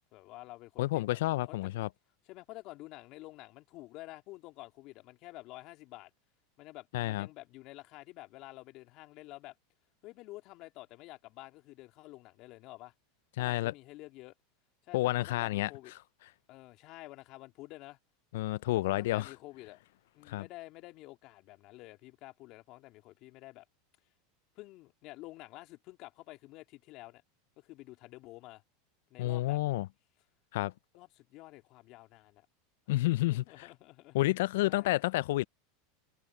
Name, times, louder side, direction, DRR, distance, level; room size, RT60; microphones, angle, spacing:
voice 1, 0.1-1.2 1.5-1.7 2.3-6.1 6.6-9.6 10.0-12.9 13.4-14.3 14.8-15.9 16.5-18.0 18.8-19.8 20.1-23.6 24.5-27.2 27.6-28.6 29.1-29.6 30.9-32.5 33.3-34.2 34.6-35.0, left 19 dB, 55° left, 3.0 m, -50 dB
voice 2, 0.8-1.9 6.9-7.3 13.4-13.7 14.9-15.7 18.3-19.3 20.3-20.4 29.2-29.9 30.5-30.7 32.9-33.7 34.1-35.4, left 17 dB, 75° left, 0.4 m, -30 dB
hypercardioid pair, 110°, 0 cm